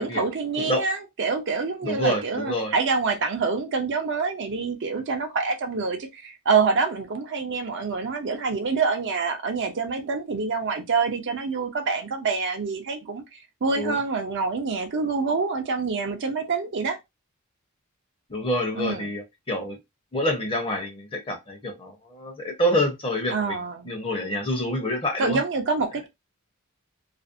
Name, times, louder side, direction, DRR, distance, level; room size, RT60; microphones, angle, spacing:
voice 1, 0.0-17.0 18.7-19.1 23.3-23.9 25.2-26.1, right 4 dB, 55° right, 0.5 m, -26 dB
voice 2, 1.8-2.7 13.7-14.0 18.3-19.8 20.1-23.6 23.8-25.4, equal, 25° left, 0.7 m, -27 dB
2.5 x 2.0 x 2.5 m
head